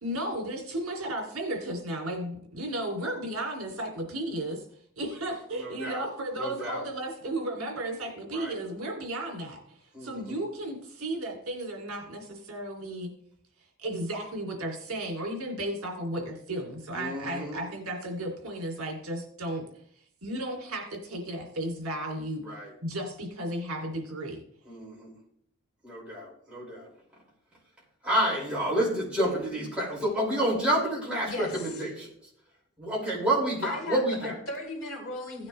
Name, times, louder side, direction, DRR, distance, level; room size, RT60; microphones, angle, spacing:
voice 1, 0.0-4.6 5.0-13.1 13.8-19.6 20.2-22.4 22.8-24.4, right 1 dB, 70° right, 2 dB, 2.8 m, -34 dB
voice 2, 5.5-6.0 6.4-6.8 8.3-8.6 9.9-10.5 16.9-17.6 22.4-22.7 24.7-25.1 25.8-26.9 28.0-32.1 32.8-34.4, right 1 dB, 5° right, -7 dB, 5.5 m, -29 dB
voice 3, 33.6-35.5, left 2 dB, 70° left, 1 dB, 3.3 m, -36 dB
16.5 x 9.5 x 3.3 m, 0.67 s
head